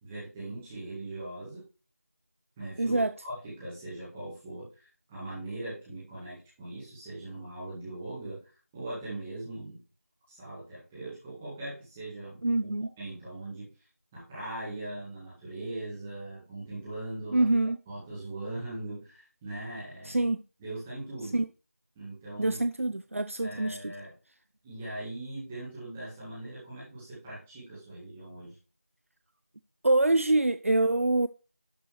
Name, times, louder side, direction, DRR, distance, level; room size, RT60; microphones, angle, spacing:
voice 1, 0.0-1.6 2.6-8.4 8.7-9.8 10.3-13.7 14.1-17.6 17.9-20.2 20.6-21.4 21.9-22.6 23.4-24.1 24.6-28.5, right 2 dB, 5° right, 1.8 m, -40 dB
voice 2, 2.8-3.1 12.4-12.9 17.3-17.8 20.1-20.4 21.3-21.5 22.4-23.9 29.8-31.3, right 2 dB, 60° right, 0.5 m, -25 dB
11.5 x 5.5 x 3.1 m
figure-of-eight pair, 175°, 8 cm